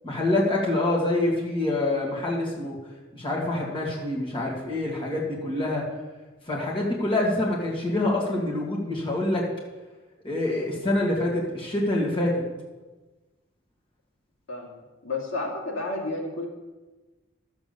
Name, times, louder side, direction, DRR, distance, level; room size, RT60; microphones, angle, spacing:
voice 1, 0.0-2.8 3.1-5.8 6.5-9.5 10.2-12.4, left 1 dB, 25° left, -3 dB, 2.2 m, -26 dB
voice 2, 14.5-16.5, left 2 dB, 80° left, -1 dB, 2.7 m, -31 dB
12.0 x 7.3 x 7.0 m, 1.2 s
head